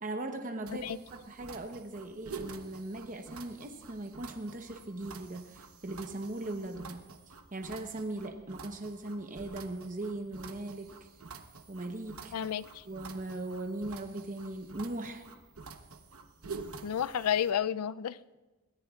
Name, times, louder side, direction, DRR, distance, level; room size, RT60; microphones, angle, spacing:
voice 1, 0.0-7.1 7.5-11.0 11.7-12.3 12.9-15.3, right 2 dB, 35° right, 4 dB, 0.9 m, -39 dB
sound 1, 0.7-17.5, right 4 dB, 70° right, 1.0 m, -48 dB
voice 2, 12.3-12.8 16.8-18.2, left 9 dB, 80° left, 18 dB, 0.4 m, -31 dB
22.0 x 17.5 x 2.4 m, 1.2 s
head